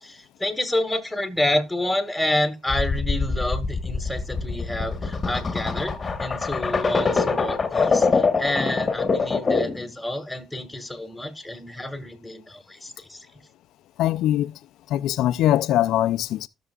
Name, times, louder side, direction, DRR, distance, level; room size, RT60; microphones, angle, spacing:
voice 1, 0.0-13.3, left 1 dB, 5° left, 1.9 m, -28 dB
sound 1, 2.7-9.9, left 4 dB, 35° left, 1.2 m, -24 dB
voice 2, 14.0-14.5 14.9-16.5, left 13 dB, 85° left, 0.4 m, -22 dB
14.0 x 6.7 x 2.4 m
cardioid pair, 80°, 0 cm